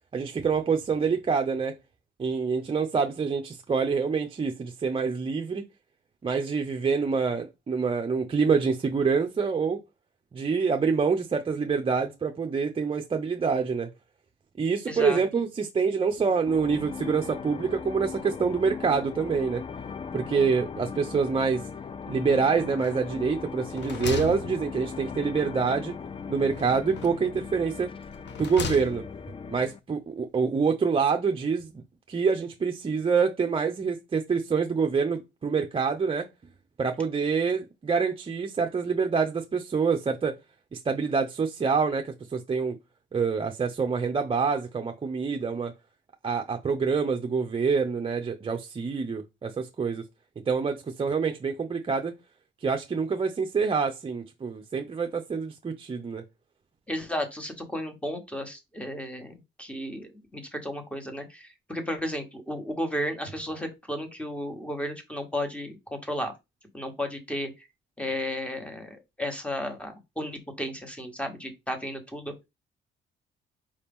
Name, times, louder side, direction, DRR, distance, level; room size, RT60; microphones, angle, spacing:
voice 1, 0.1-1.8 2.2-5.6 6.2-9.8 10.3-13.9 14.6-19.6 20.1-21.6 22.1-25.9 26.3-27.9 28.4-29.0 29.5-31.8 32.1-36.3 36.8-40.4 40.7-42.8 43.1-45.7 46.2-50.0 50.5-52.1 52.6-56.2, right 5 dB, 25° right, 0.5 m, -26 dB
voice 2, 14.9-15.2 56.9-59.3 59.6-66.3 66.7-67.5 68.0-72.3, equal, 5° left, 1.3 m, -33 dB
sound 1, 16.5-29.8, left 6 dB, 25° left, 0.4 m, -38 dB
sound 2, 22.8-23.3 23.6-25.2 26.5-27.3 28.0-29.3, left 7 dB, 60° left, 0.8 m, -37 dB
4.9 x 2.8 x 3.5 m
cardioid pair, 90°, 20 cm